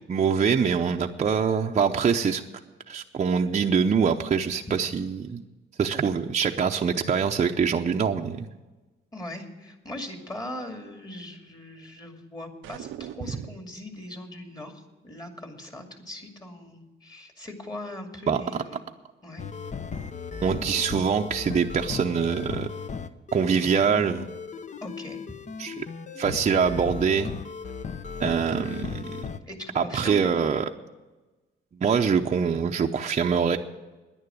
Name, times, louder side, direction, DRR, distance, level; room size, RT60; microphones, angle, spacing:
voice 1, 0.1-2.4 2.9-5.4 5.8-8.5 18.3-18.4 20.4-22.7 23.3-24.3 25.6-25.9 26.2-27.3 28.2-29.2 29.7-30.7 31.8-33.6, right 6 dB, 35° right, 3 dB, 0.7 m, -24 dB
voice 2, 9.1-18.8 19.2-19.5 24.8-25.2 29.5-30.5, left 1 dB, 20° left, 4 dB, 2.4 m, -40 dB
sound 1, 12.6-13.7, right 12 dB, 80° right, 0.6 m, -41 dB
sound 2, 19.4-29.4, left 6 dB, 35° left, 0.8 m, -36 dB
10.5 x 9.7 x 9.2 m, 1.2 s
cardioid pair, 90°, 20 cm